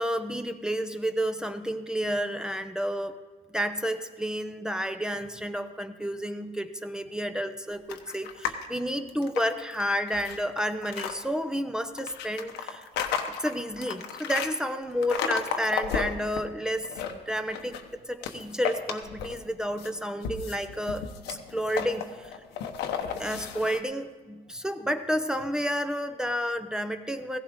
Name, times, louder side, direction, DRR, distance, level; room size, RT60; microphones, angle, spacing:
voice 1, 0.0-3.2 3.5-12.9 13.3-16.9 17.3-22.4 23.2-27.4, equal, 5° right, 8 dB, 0.7 m, -31 dB
sound 1, 7.9-8.7 9.1-11.1 12.0-14.5 15.0-16.4 16.8-17.9 18.2-19.5 19.8-23.8, left 7 dB, 85° left, 1.1 m, -33 dB
16.0 x 15.5 x 3.7 m, 1.3 s
cardioid pair, 110°, 17 cm